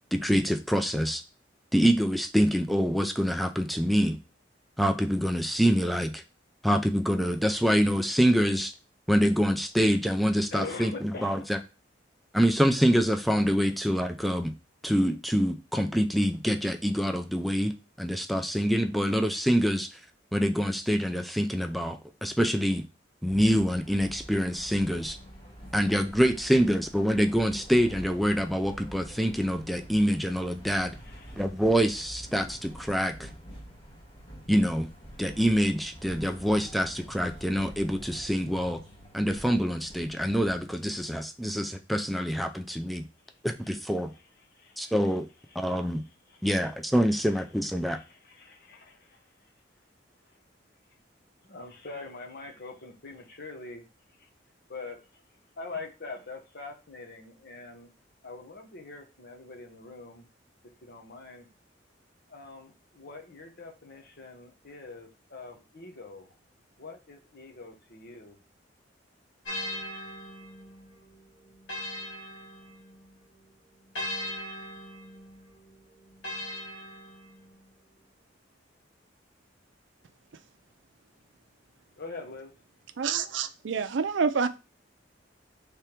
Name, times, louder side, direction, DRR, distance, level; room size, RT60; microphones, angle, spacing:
voice 1, 0.1-1.2 1.7-4.2 4.8-6.2 6.6-8.7 9.1-11.4 12.3-14.5 14.8-19.9 20.3-22.8 23.2-25.2 25.7-31.0 31.4-33.3 34.5-34.9 35.2-38.8 39.1-43.1 43.4-44.1 44.8-45.3 45.6-46.0 46.4-48.0, equal, ahead, 0.4 m, -25 dB
voice 2, 10.5-11.5 13.6-13.7 31.0-31.4 43.3-43.4 43.7-43.8 44.1-45.2 45.5-46.7 47.1-47.4 47.9-49.5 50.2-50.4 51.4-53.8 54.2-54.3 54.7-55.2 55.6-57.9 58.2-60.3 60.8-61.5 62.3-66.3 66.8-68.4 82.0-82.5, left 3 dB, 60° left, 1.1 m, -44 dB
sound 1, 23.3-40.6, equal, 35° left, 1.7 m, -46 dB
sound 2, 69.4-73.2 73.9-77.6, left 1 dB, 85° left, 2.1 m, -40 dB
voice 3, 83.0-84.5, right 6 dB, 85° right, 0.5 m, -27 dB
3.5 x 3.3 x 4.4 m
head